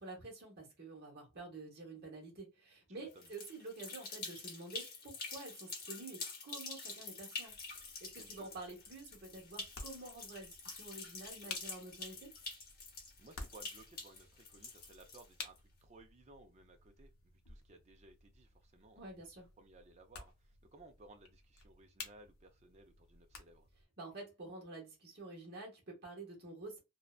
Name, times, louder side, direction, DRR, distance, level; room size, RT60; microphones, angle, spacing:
voice 1, 0.0-7.6 8.0-12.3 18.9-19.5 24.0-26.8, right 2 dB, 45° right, 0.9 m, -49 dB
voice 2, 3.0-3.3 8.1-8.5 13.2-17.1 17.5-19.1 19.6-23.7, right 2 dB, 30° right, 0.4 m, -60 dB
sound 1, 3.1-15.6, left 3 dB, 40° left, 0.8 m, -47 dB
sound 2, 7.5-23.8, left 4 dB, 70° left, 0.6 m, -54 dB
2.6 x 2.1 x 2.3 m
head